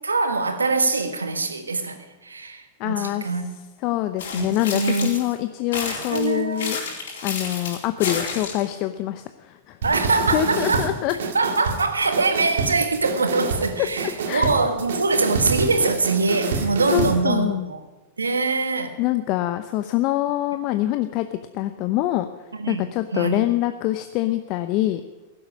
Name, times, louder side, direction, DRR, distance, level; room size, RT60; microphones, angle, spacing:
voice 1, 0.0-3.5 4.3-4.5 4.7-5.1 5.7-6.7 9.8-10.9 11.3-17.8 18.2-19.0 22.5-22.8 23.1-23.4, right 3 dB, 90° right, 7 dB, 1.5 m, -23 dB
voice 2, 2.8-3.3 3.8-6.8 7.2-9.8 10.3-11.1 14.2-14.5 16.9-17.7 19.0-22.3 22.7-25.0, left 14 dB, 50° left, 9 dB, 0.7 m, -25 dB
sound 1, 4.2-5.3 5.7-8.7, left 5 dB, 70° left, 4.1 m, -31 dB
sound 2, 9.8-17.2, right 5 dB, 70° right, 1.9 m, -28 dB
16.5 x 7.9 x 9.8 m, 1.2 s
hypercardioid pair, 95°, 0 cm